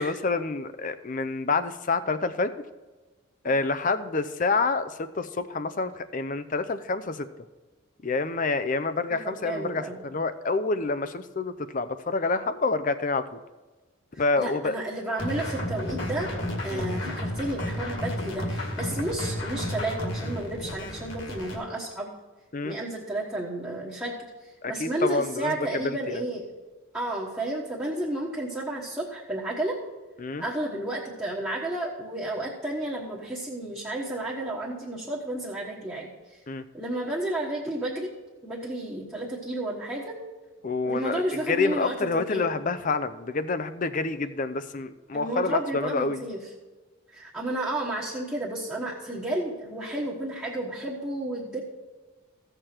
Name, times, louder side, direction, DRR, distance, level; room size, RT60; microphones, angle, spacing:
voice 1, 0.0-2.5 3.4-7.3 8.0-13.3 14.2-14.8 16.7-16.9 22.5-22.8 24.6-25.5 25.8-26.2 30.2-30.4 36.5-36.6 40.6-46.2, left 3 dB, 40° left, 11 dB, 0.5 m, -28 dB
voice 2, 9.1-10.0 14.4-16.3 16.6-22.1 22.6-24.1 24.4-26.5 26.9-29.8 30.4-36.4 36.7-38.1 38.4-40.1 40.8-42.5 45.1-46.4 47.1-51.6, right 1 dB, 10° right, -7 dB, 1.3 m, -32 dB
sound 1, 15.2-21.6, left 1 dB, 60° left, 2.1 m, -32 dB
15.5 x 6.8 x 4.4 m, 1.2 s
head